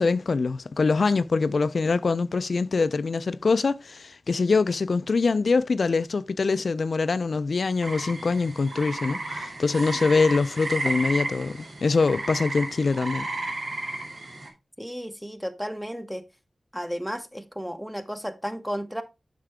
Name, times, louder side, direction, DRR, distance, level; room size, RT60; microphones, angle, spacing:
voice 1, 0.0-13.3, left 4 dB, 70° left, 0.3 m, -24 dB
sound 1, 7.8-14.5, right 2 dB, 70° right, 2.3 m, -33 dB
voice 2, 14.8-16.2 16.7-19.0, equal, 5° right, 0.9 m, -33 dB
7.4 x 5.7 x 3.4 m
cardioid pair, 60°, 0 cm